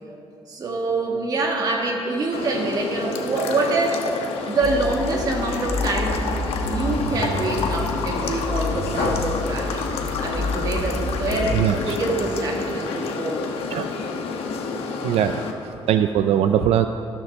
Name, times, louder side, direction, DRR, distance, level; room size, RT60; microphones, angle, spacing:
voice 1, 0.5-4.1 4.4-6.2 6.7-11.6 11.8-13.4, right 2 dB, 40° right, 0 dB, 1.5 m, -25 dB
sound 1, 2.3-15.5, left 4 dB, 75° left, 1.0 m, -29 dB
sound 2, 4.6-11.6, left 2 dB, 15° left, 1.4 m, -29 dB
voice 2, 11.5-12.0 13.7-13.9 15.0-16.9, right 10 dB, 80° right, 8 dB, 0.4 m, -21 dB
13.0 x 12.5 x 3.5 m, 2.7 s
cardioid pair, 175°, 10 cm